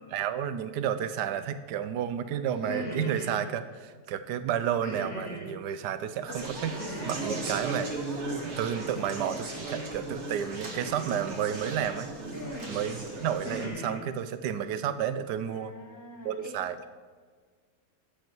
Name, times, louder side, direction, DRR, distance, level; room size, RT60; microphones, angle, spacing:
voice 1, 0.1-12.1 12.7-15.7 16.2-16.9, right 9 dB, 85° right, 12 dB, 1.3 m, -31 dB
sound 1, 2.5-3.4 4.8-5.5 6.8-7.5 8.8-9.4 10.8-11.5 12.3-12.7 13.2-14.0, equal, 85° left, 3.7 m, -39 dB
Conversation, 6.3-13.7, right 2 dB, 45° right, 1.8 m, -37 dB
voice 2, 12.3-12.8 15.5-16.6, equal, 15° right, 2 dB, 0.6 m, -43 dB
13.5 x 8.0 x 4.6 m, 1.5 s
omnidirectional pair, 1.8 m